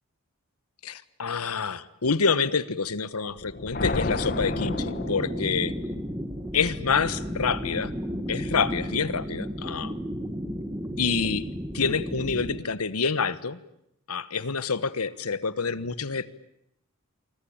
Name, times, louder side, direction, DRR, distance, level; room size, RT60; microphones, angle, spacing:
voice 1, 0.8-5.7 6.5-7.9 8.3-10.0 11.0-11.4 11.7-13.6 14.1-16.3, left 5 dB, 90° left, 16 dB, 1.3 m, -27 dB
sound 1, 3.3-5.9, left 2 dB, 40° left, 1.3 m, -32 dB
sound 2, 4.0-12.6, equal, 15° right, 1.7 m, -33 dB
27.0 x 25.0 x 8.8 m, 0.78 s
head